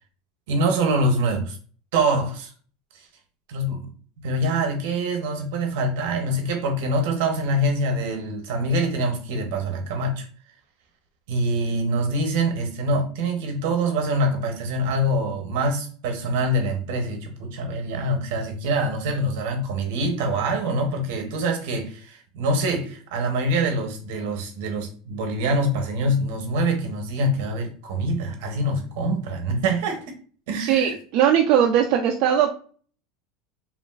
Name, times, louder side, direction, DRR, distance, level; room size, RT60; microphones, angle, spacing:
voice 1, 0.5-1.6 1.9-2.5 3.5-3.9 4.2-10.2 11.3-30.0 30.5-30.9, right 1 dB, 75° right, 4 dB, 0.8 m, -25 dB
voice 2, 30.6-32.5, right 9 dB, 55° right, 0 dB, 0.3 m, -19 dB
3.0 x 2.5 x 2.3 m, 0.42 s
supercardioid pair, 150°, 0 cm